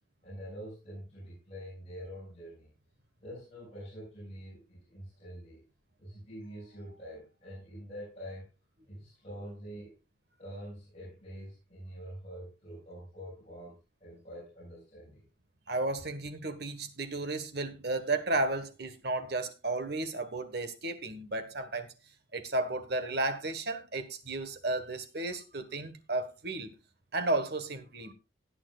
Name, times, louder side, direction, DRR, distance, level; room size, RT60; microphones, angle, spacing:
voice 1, 0.2-2.7 3.2-5.7 6.0-8.5 8.9-9.9 10.4-15.2, equal, 35° left, 6.6 m, -45 dB
voice 2, 15.7-21.9 22.3-26.7 27.1-28.1, right 2 dB, 55° right, 1.4 m, -33 dB
18.0 x 8.8 x 2.4 m
head